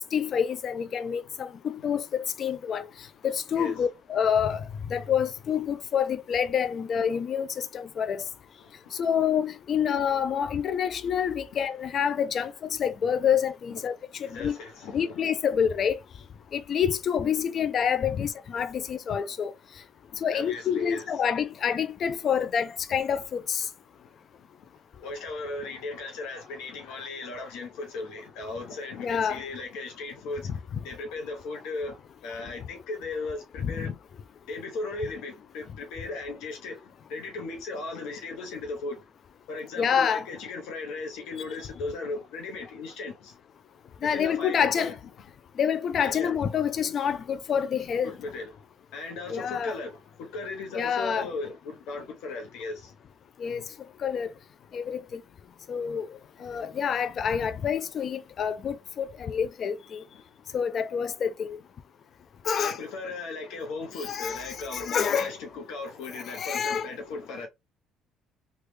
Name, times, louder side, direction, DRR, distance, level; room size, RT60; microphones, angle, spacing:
voice 1, 0.1-2.9 3.2-4.6 4.9-8.3 8.9-13.9 14.2-14.5 14.9-16.0 16.5-19.5 20.2-23.7 29.0-29.4 33.6-33.9 39.8-40.3 44.0-44.9 45.6-48.1 49.3-49.7 50.7-51.3 53.4-53.6 54.0-54.3 54.7-55.2 55.7-56.1 56.4-60.0 60.5-61.6 62.4-62.8 64.0-65.3 66.1-66.9, left 7 dB, 50° left, 0.4 m, -27 dB
voice 2, 8.6-9.0 14.2-15.2 18.8-18.9 20.1-21.1 24.4-24.7 25.0-33.9 34.5-39.1 39.5-43.4 44.0-44.9 46.0-46.3 48.0-48.6 48.9-52.9 62.6-67.5, left 3 dB, 80° left, 0.9 m, -37 dB
3.2 x 2.3 x 3.2 m
supercardioid pair, 90°, 0 cm